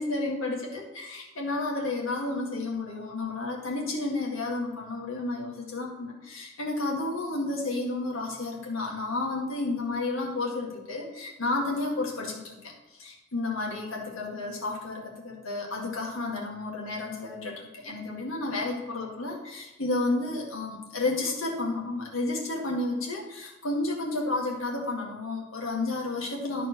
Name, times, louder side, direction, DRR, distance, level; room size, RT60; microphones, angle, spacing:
voice 1, 0.0-26.7, left 2 dB, 85° left, -1 dB, 2.0 m, -31 dB
12.5 x 4.6 x 4.6 m, 1.1 s
head